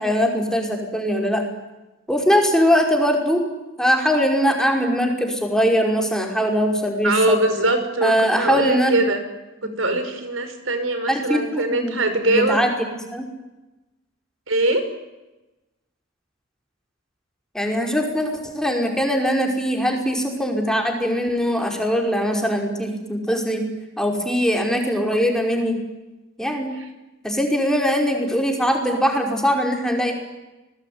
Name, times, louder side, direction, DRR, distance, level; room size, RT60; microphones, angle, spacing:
voice 1, 0.0-1.4 2.1-3.4 3.8-7.4 8.0-9.0 11.1-11.9 12.3-13.3 17.5-23.7 24.0-25.8 26.4-26.7 27.2-30.1, equal, 5° left, 2 dB, 5.4 m, -21 dB
voice 2, 7.0-9.2 9.6-12.7 14.5-14.9, right 2 dB, 70° right, 9 dB, 5.4 m, -22 dB
30.0 x 20.5 x 9.6 m, 1.0 s
head